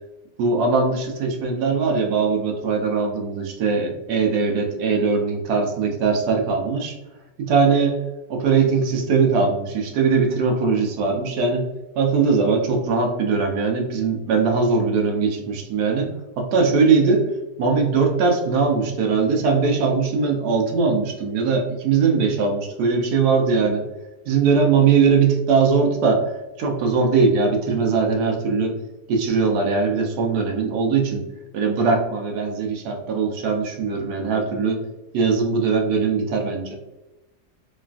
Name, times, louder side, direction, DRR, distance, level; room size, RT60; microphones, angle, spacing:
voice 1, 0.4-7.0 7.4-8.0 8.3-11.7 11.9-17.3 17.6-23.8 24.3-28.8 29.1-31.2 31.5-34.8 35.1-36.8, right 5 dB, 75° right, 2 dB, 1.1 m, -20 dB
3.1 x 2.3 x 2.3 m, 1.0 s
omnidirectional pair, 1.8 m